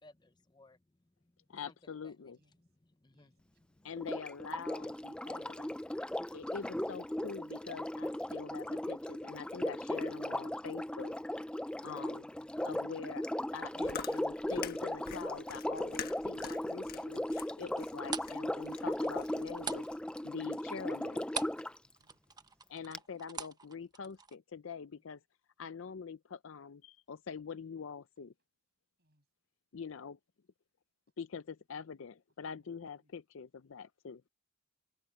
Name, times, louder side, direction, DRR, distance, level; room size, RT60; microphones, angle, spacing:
voice 1, 0.0-1.7 2.0-3.9, left 2 dB, 20° left, 0.7 m, -64 dB
voice 2, 1.5-2.4 3.8-5.8 6.3-11.1 11.8-12.2 12.6-19.8 20.2-21.3 22.7-25.2 25.6-28.3 29.7-30.2 31.2-34.2, left 6 dB, 65° left, 0.5 m, -45 dB
voice 3, 2.3-2.7 3.1-3.4 11.8-12.6 21.7-22.5 24.9-25.1 29.0-29.3 32.5-33.1, equal, 50° right, 7.6 m, -74 dB
Sink (filling or washing), 4.0-21.8 22.9-23.0, left 1 dB, 5° left, 0.3 m, -37 dB
Chewing mastication, 13.5-20.0, left 7 dB, 45° left, 1.5 m, -47 dB
sound 1, 17.7-21.7 22.0-24.4, right 5 dB, 20° right, 0.9 m, -42 dB
head